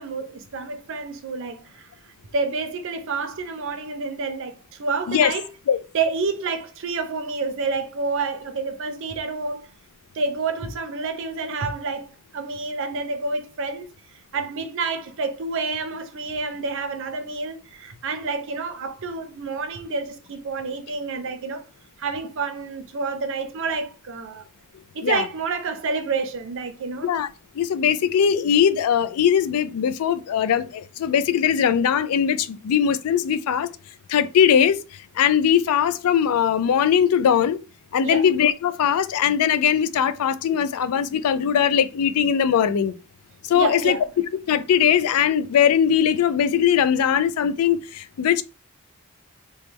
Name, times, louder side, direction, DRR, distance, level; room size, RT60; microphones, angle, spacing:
voice 1, 0.0-1.9 2.3-5.5 5.9-9.7 10.1-12.1 12.3-13.9 14.3-21.6 22.0-24.4 24.9-27.1 38.0-38.2 43.5-44.0, right 4 dB, 60° right, 0.5 m, -28 dB
voice 2, 27.6-33.7 34.1-34.8 35.2-37.6 37.9-42.9 43.5-44.0 44.5-48.4, left 8 dB, 85° left, 0.3 m, -20 dB
3.0 x 2.1 x 3.3 m
head